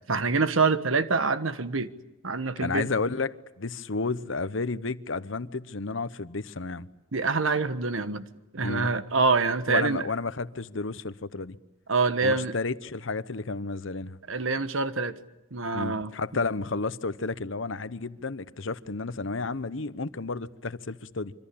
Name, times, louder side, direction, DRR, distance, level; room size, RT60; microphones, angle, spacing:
voice 1, 0.1-1.9 2.2-2.9 7.1-8.3 8.5-10.0 11.9-12.5 14.3-15.1 15.5-16.1, right 4 dB, 85° right, 1.4 m, -25 dB
voice 2, 2.6-6.9 8.6-8.9 9.7-11.6 12.2-14.2 15.7-21.3, left 3 dB, 75° left, 0.9 m, -32 dB
26.0 x 24.5 x 8.6 m
head